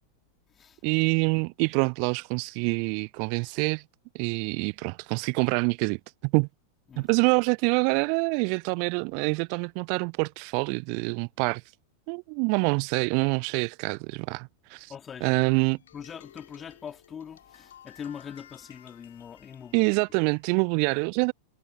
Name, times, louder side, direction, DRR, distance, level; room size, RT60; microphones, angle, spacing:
voice 1, 0.8-3.8 4.1-6.5 7.0-11.6 12.1-14.9 15.2-15.8 19.7-21.3, right 40 dB or more, 45° right, 0.7 m, -26 dB
voice 2, 14.9-15.4 15.9-19.9, left 8 dB, 20° left, 3.7 m, -42 dB
sound 1, 15.7-20.5, left 10 dB, 65° left, 6.2 m, -54 dB
figure-of-eight pair, 90°, 0 cm